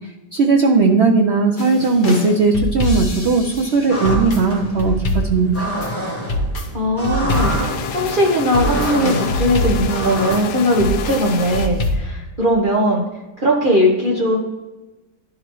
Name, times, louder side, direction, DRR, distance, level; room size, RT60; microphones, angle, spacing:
voice 1, 0.3-5.7, right 4 dB, 80° right, 1 dB, 0.6 m, -17 dB
sound 1, 1.6-12.0, left 1 dB, 40° left, 0.8 m, -24 dB
sound 2, 3.9-10.4, right 1 dB, 10° left, 0.8 m, -27 dB
voice 2, 6.7-13.0 13.4-14.4, equal, 35° right, -2 dB, 0.9 m, -19 dB
sound 3, 7.3-11.7, left 8 dB, 80° left, 1.2 m, -29 dB
11.5 x 3.9 x 3.0 m, 1.1 s
omnidirectional pair, 1.9 m